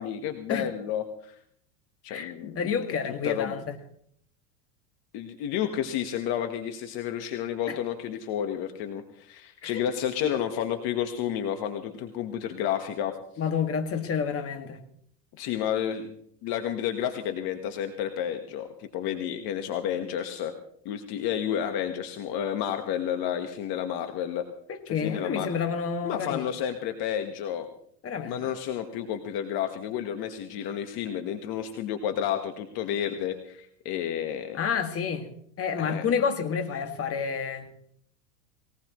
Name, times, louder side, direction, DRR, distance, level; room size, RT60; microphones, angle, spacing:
voice 1, 0.0-1.4 2.0-2.5 3.2-3.6 5.1-13.2 15.4-20.5 20.8-24.4 24.9-25.5 26.0-27.7 28.2-34.6 35.8-36.0, left 9 dB, 50° left, 6 dB, 1.6 m, -31 dB
voice 2, 2.1-3.8 7.7-7.8 9.6-9.8 10.2-10.3 13.4-14.8 24.7-26.5 28.0-28.5 34.5-35.3 35.6-37.7, left 6 dB, 30° left, 6 dB, 2.1 m, -29 dB
20.5 x 19.0 x 3.2 m, 0.67 s
supercardioid pair, 115°, 47 cm